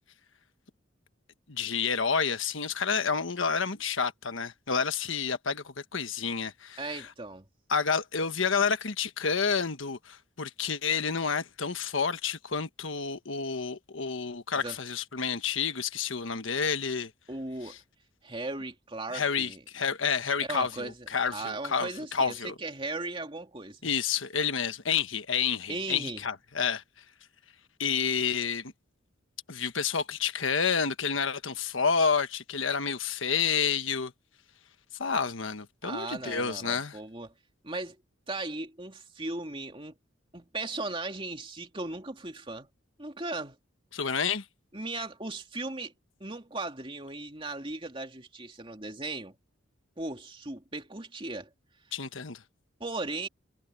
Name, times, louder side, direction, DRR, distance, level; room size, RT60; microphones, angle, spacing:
voice 1, 1.5-7.1 7.7-17.1 17.7-17.8 19.1-22.5 23.8-26.8 27.8-28.7 29.5-34.1 35.0-37.0 43.9-44.4 51.9-52.4, left 6 dB, 80° left, 1.3 m, -29 dB
voice 2, 6.8-7.4 14.6-14.8 17.3-17.8 18.2-19.6 20.5-23.9 25.7-26.2 35.8-37.3 37.6-38.0 38.3-40.0 40.3-42.7 43.0-43.6 44.7-45.9 46.2-49.4 50.0-51.5 52.8-53.3, right 2 dB, 25° right, 2.7 m, -37 dB
head